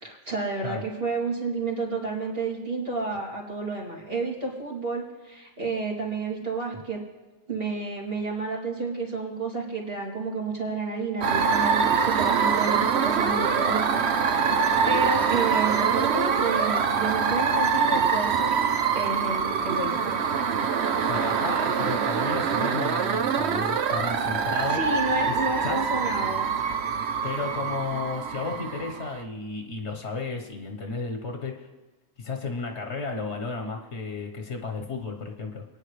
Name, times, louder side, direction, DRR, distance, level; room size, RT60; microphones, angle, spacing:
voice 1, 0.0-7.0 7.5-14.5 14.8-20.2 24.7-26.5, right 3 dB, 60° right, -3 dB, 3.1 m, -31 dB
sound 1, 11.2-29.2, right 6 dB, 75° right, 1.0 m, -24 dB
voice 2, 21.0-24.8 25.3-25.4 25.6-25.8 27.2-31.7 32.2-35.6, left 4 dB, 90° left, 3 dB, 1.6 m, -33 dB
27.5 x 9.8 x 3.3 m, 1.2 s
omnidirectional pair, 1.1 m